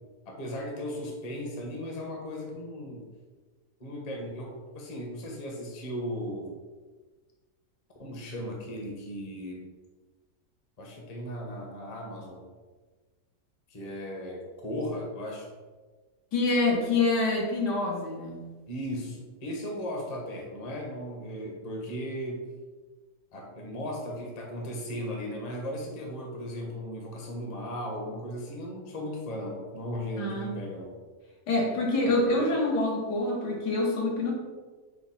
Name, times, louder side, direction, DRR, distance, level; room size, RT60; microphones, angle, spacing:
voice 1, 0.3-3.0 3.8-6.5 8.0-9.7 10.8-12.4 13.7-15.5 18.7-22.4 23.3-30.9, equal, 35° left, -1 dB, 0.6 m, -36 dB
voice 2, 16.3-18.4 30.2-30.6 31.5-34.3, left 2 dB, 80° left, -1 dB, 1.6 m, -26 dB
5.7 x 2.0 x 4.1 m, 1.3 s
omnidirectional pair, 1.8 m